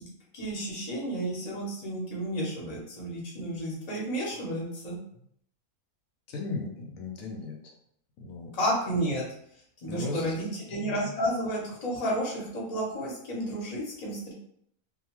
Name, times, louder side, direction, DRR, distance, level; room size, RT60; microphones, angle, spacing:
voice 1, 0.3-5.0 8.5-9.2 9.8-14.3, equal, 35° left, -4 dB, 0.8 m, -31 dB
voice 2, 6.3-7.7 8.2-8.5 9.9-11.1, left 3 dB, 85° left, 1 dB, 1.0 m, -37 dB
2.7 x 2.3 x 2.9 m, 0.69 s
omnidirectional pair, 1.4 m